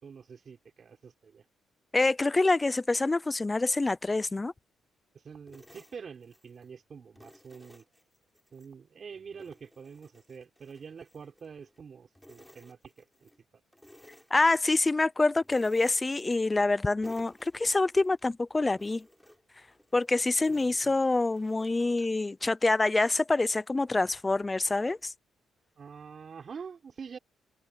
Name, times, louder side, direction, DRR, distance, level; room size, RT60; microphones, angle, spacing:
voice 1, 0.0-1.4 5.2-7.8 8.5-13.3 20.5-21.0 25.8-27.2, right 6 dB, 45° right, 5.9 m, -46 dB
voice 2, 1.9-4.5 14.3-19.0 19.9-25.1, left 3 dB, 20° left, 0.7 m, -26 dB
sound 1, 5.5-6.7 7.2-8.7 9.1-11.8 12.1-13.4 13.7-15.0 15.4-16.7 17.0-18.3 18.7-22.2, equal, 5° left, 6.6 m, -57 dB
cardioid pair, 90°, 0 cm